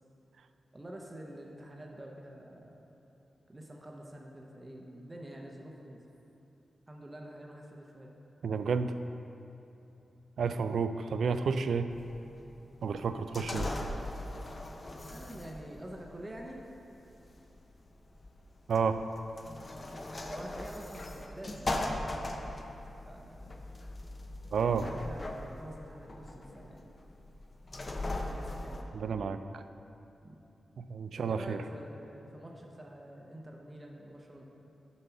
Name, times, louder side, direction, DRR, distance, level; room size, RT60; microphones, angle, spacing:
voice 1, 0.7-2.8 3.5-6.0 6.9-8.1 10.5-10.9 15.1-16.6 20.3-21.8 23.0-23.7 24.6-26.9 28.2-28.9 30.2-30.4 31.1-34.4, right 1 dB, 20° right, 0 dB, 0.7 m, -47 dB
voice 2, 8.4-9.0 10.4-11.9 12.8-13.7 18.7-19.0 24.5-24.9 28.9-29.6 30.8-31.6, right 5 dB, 80° right, 10 dB, 0.3 m, -31 dB
sound 1, 11.9-28.8, left 1 dB, 30° left, 0.6 m, -40 dB
6.9 x 5.3 x 5.8 m, 2.9 s
wide cardioid pair, 130°, 0 cm